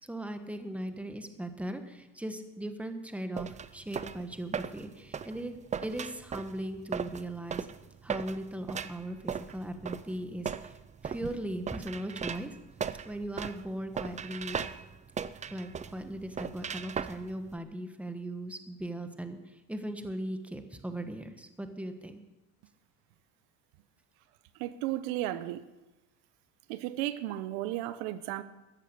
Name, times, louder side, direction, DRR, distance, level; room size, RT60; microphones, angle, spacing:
voice 1, 0.0-5.6 5.8-7.7 8.0-10.8 11.0-12.5 13.0-14.6 15.5-22.2, right 1 dB, 5° right, 1.3 m, -38 dB
sound 1, 3.4-17.6, right 7 dB, 20° right, 0.4 m, -38 dB
voice 2, 24.5-25.6 26.7-28.4, right 14 dB, 90° right, 0.9 m, -34 dB
14.5 x 10.0 x 6.7 m
supercardioid pair, 110°, 41 cm